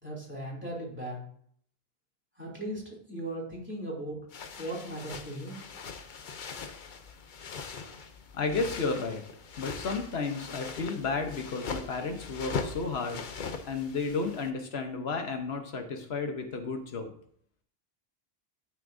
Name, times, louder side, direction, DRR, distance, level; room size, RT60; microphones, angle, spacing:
voice 1, 0.0-1.2 2.4-4.2 4.6-5.6, right 1 dB, 10° right, -3 dB, 3.0 m, -38 dB
sound 1, 4.3-14.5, left 5 dB, 55° left, 0.8 m, -40 dB
voice 2, 8.3-9.2 9.6-13.3 13.7-17.1, left 4 dB, 85° left, 5 dB, 1.3 m, -32 dB
12.0 x 6.4 x 2.7 m, 0.62 s
omnidirectional pair, 1.0 m